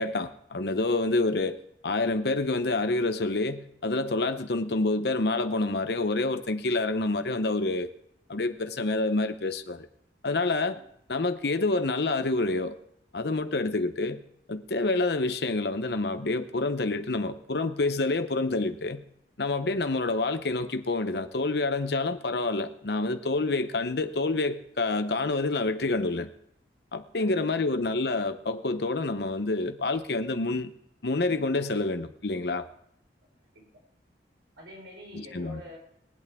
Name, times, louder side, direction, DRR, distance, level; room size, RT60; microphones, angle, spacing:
voice 1, 0.0-1.6 1.8-7.9 8.3-9.9 10.2-10.8 11.1-12.8 13.1-14.2 14.5-19.0 19.4-26.3 26.9-30.7 31.0-32.7 35.1-35.6, left 2 dB, 65° left, 0.8 m, -28 dB
voice 2, 27.2-27.7 33.5-33.7 34.6-35.8, equal, 80° right, 4.7 m, -46 dB
22.0 x 8.4 x 3.5 m
head